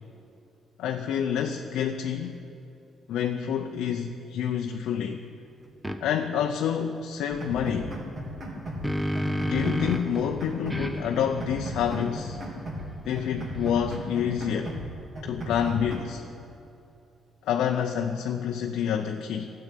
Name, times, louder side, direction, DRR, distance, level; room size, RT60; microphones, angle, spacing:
voice 1, 0.8-2.4 3.1-5.2 6.0-7.9 9.5-12.4 13.0-14.7 15.2-16.2 17.4-19.5, left 8 dB, 85° left, 3 dB, 0.6 m, -28 dB
sound 1, 5.8-6.0 8.4-10.2 10.7-14.0, equal, 10° right, 1.0 m, -32 dB
sound 2, 7.3-8.9 9.2-10.9 11.2-12.9 13.2-14.9 15.2-16.0, equal, 45° right, 3.3 m, -36 dB
13.0 x 7.8 x 10.0 m, 2.9 s
cardioid pair, 90°, 0 cm